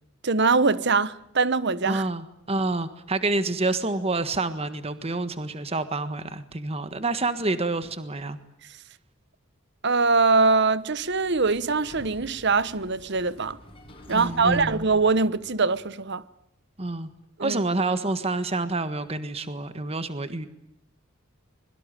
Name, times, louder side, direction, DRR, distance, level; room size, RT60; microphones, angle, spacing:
voice 1, 0.2-2.0 9.8-13.6 14.1-16.2 17.4-17.6, right 4 dB, 55° right, 1.1 m, -22 dB
voice 2, 1.8-8.4 14.1-14.8 16.8-17.1 17.4-20.5, right 2 dB, 30° right, 1.5 m, -28 dB
Sliding door, 10.7-15.9, equal, 25° left, 7.3 m, -46 dB
25.0 x 23.0 x 9.1 m
head